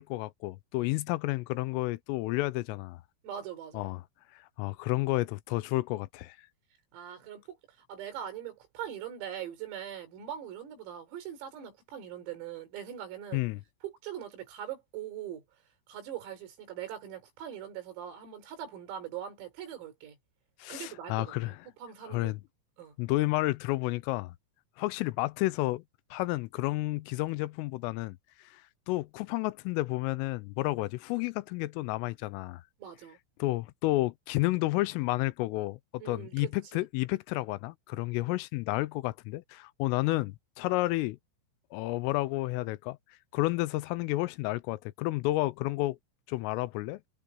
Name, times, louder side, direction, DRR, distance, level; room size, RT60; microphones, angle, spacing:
voice 1, 0.0-3.0 3.7-4.0 4.3-6.4 13.3-13.6 20.6-21.6 22.0-22.4 23.0-24.3 24.8-25.8 26.1-28.2 28.4-28.6 28.9-32.6 33.4-41.2 41.7-43.0 43.3-46.0 46.3-47.0, left 19 dB, 85° left, 3.2 m, -31 dB
voice 2, 3.2-3.9 6.9-7.6 7.9-13.4 13.8-15.4 15.9-20.2 20.7-22.4 22.8-23.0 32.8-33.2 36.0-36.8, right 10 dB, 85° right, 7.3 m, -41 dB
omnidirectional pair, 5.9 m